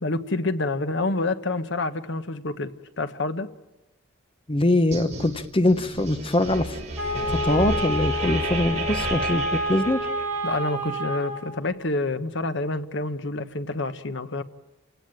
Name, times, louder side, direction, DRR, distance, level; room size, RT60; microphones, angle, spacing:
voice 1, 0.0-3.5 10.4-14.4, left 2 dB, 65° left, 10 dB, 1.3 m, -28 dB
voice 2, 4.5-6.8 7.3-10.0, left 1 dB, 25° left, 10 dB, 1.0 m, -23 dB
sound 1, 4.9-10.5, right 2 dB, 35° right, 6.1 m, -32 dB
Wind instrument woodwind instrument, 7.0-11.5, equal, 10° right, 8.0 m, -29 dB
29.5 x 17.5 x 9.1 m, 1.1 s
head